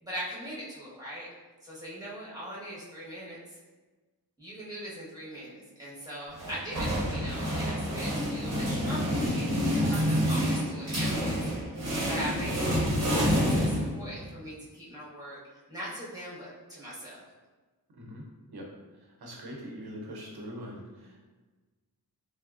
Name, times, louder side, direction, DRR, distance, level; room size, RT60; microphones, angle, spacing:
voice 1, 0.0-1.3 1.6-3.4 4.4-11.4 11.6-11.8 12.1-15.4 15.7-17.2, equal, 10° right, -8 dB, 1.2 m, -41 dB
sound 1, 6.4-14.3, equal, 40° right, 0.9 m, -28 dB
voice 2, 17.9-18.2 18.5-18.7 18.9-21.2, equal, 70° right, -2 dB, 0.8 m, -42 dB
3.5 x 2.0 x 2.4 m, 1.3 s
cardioid pair, 40°, 39 cm